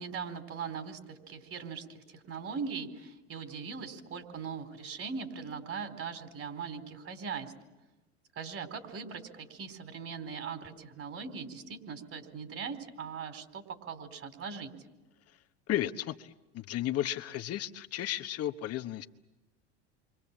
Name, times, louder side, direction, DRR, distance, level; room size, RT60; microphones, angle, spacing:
voice 1, 0.0-7.5 8.4-14.7, right 6 dB, 40° right, 7 dB, 4.2 m, -40 dB
voice 2, 15.7-19.1, left 13 dB, 45° left, 8 dB, 1.1 m, -34 dB
29.0 x 24.5 x 7.4 m, 1.0 s
hypercardioid pair, 85°, 35 cm